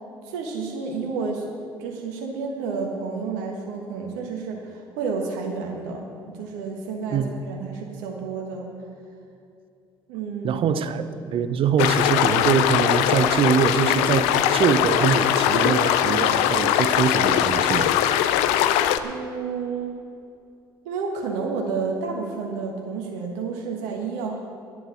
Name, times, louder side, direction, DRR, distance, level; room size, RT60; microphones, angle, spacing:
voice 1, 0.2-1.4 1.8-8.7 10.1-10.6 19.0-20.0 20.8-24.4, right 5 dB, 75° right, 1 dB, 1.4 m, -30 dB
voice 2, 10.4-11.0 11.3-17.9, right 6 dB, 55° right, 11 dB, 0.8 m, -23 dB
sound 1, 11.8-19.0, left 11 dB, 75° left, 0.5 m, -21 dB
11.0 x 7.8 x 8.0 m, 2.5 s
hypercardioid pair, 55°, 11 cm